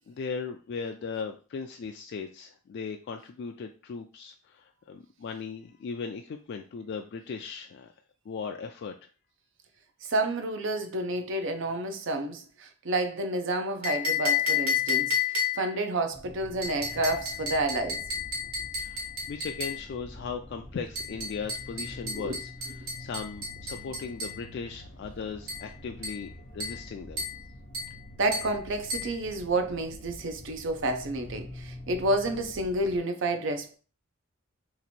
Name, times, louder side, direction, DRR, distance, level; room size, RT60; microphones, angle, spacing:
voice 1, 0.0-7.9 8.3-9.0 18.8-22.5 23.0-27.2, left 5 dB, 55° left, 0.3 m, -38 dB
voice 2, 10.0-18.0 22.1-22.4 28.2-33.7, right 2 dB, 60° right, 0.6 m, -30 dB
sound 1, 13.8-15.8 16.6-19.9 21.0-24.4 25.5-25.7 26.0-26.3 26.6-26.9 27.2-27.4 27.7-28.0 28.3-28.6 28.9-29.2, left 5 dB, 80° right, 1.3 m, -31 dB
sound 2, 16.1-33.0, left 1 dB, 25° left, 0.9 m, -46 dB
2.9 x 2.5 x 4.2 m
head